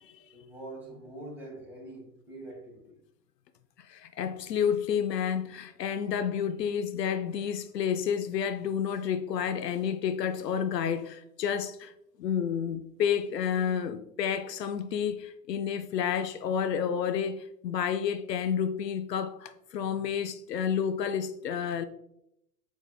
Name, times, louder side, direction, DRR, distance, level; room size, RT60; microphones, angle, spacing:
voice 1, 0.3-3.0, right 2 dB, 5° right, 1.6 m, -44 dB
voice 2, 3.9-11.9 12.2-21.8, left 8 dB, 85° left, 0.5 m, -30 dB
7.7 x 3.0 x 2.2 m
hypercardioid pair, 105°, 48 cm